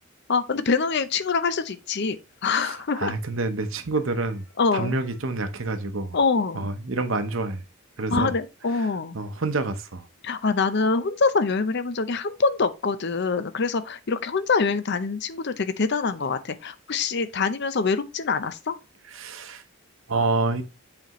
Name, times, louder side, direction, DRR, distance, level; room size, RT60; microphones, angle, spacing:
voice 1, 0.3-2.2 2.4-3.1 4.6-4.9 6.1-6.7 8.1-9.2 10.2-18.8, left 4 dB, 55° left, 0.6 m, -25 dB
voice 2, 2.6-4.4 4.7-6.2 6.5-7.6 8.0-8.3 9.1-10.1 19.1-19.6 20.1-20.6, right 3 dB, 65° right, 0.9 m, -27 dB
7.8 x 4.2 x 3.0 m
head